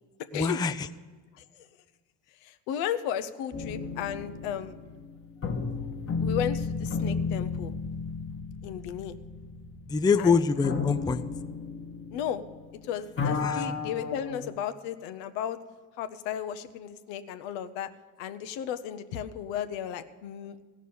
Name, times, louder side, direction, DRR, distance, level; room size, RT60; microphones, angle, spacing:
voice 1, 0.3-0.9 9.9-11.3 13.4-13.7, left 5 dB, 10° left, 11 dB, 0.4 m, -25 dB
voice 2, 2.4-4.8 6.2-7.7 8.6-9.2 10.2-10.4 12.1-12.4 12.8-15.6 16.0-17.9 18.2-20.5, left 9 dB, 80° left, 10 dB, 0.9 m, -34 dB
sound 1, 3.5-12.8 13.0-14.5, left 4 dB, 30° left, 1.4 m, -33 dB
15.5 x 6.3 x 7.0 m, 1.5 s
supercardioid pair, 75°, 44 cm